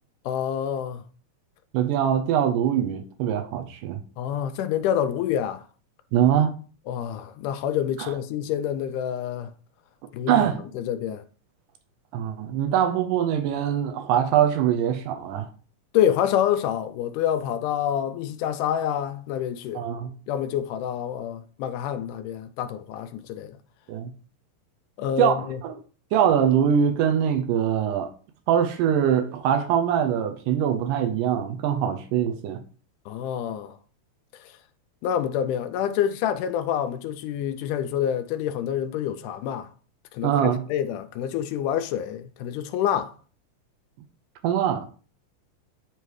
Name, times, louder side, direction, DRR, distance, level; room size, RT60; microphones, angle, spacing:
voice 1, 0.3-1.0 4.2-5.6 6.9-9.5 10.1-10.5 10.7-11.2 15.9-19.9 20.3-23.6 25.0-25.6 33.1-33.8 34.3-34.6 35.0-39.7 40.1-43.1, left 9 dB, 80° left, 2.1 m, -27 dB
voice 2, 1.7-4.0 6.1-6.5 8.0-8.1 10.3-10.6 12.1-15.5 19.8-20.1 23.9-24.1 25.2-25.4 25.6-25.7 26.1-28.1 28.5-32.6 40.2-40.6 44.4-44.9, right 9 dB, 85° right, 2.3 m, -23 dB
9.8 x 3.3 x 4.7 m
omnidirectional pair, 3.7 m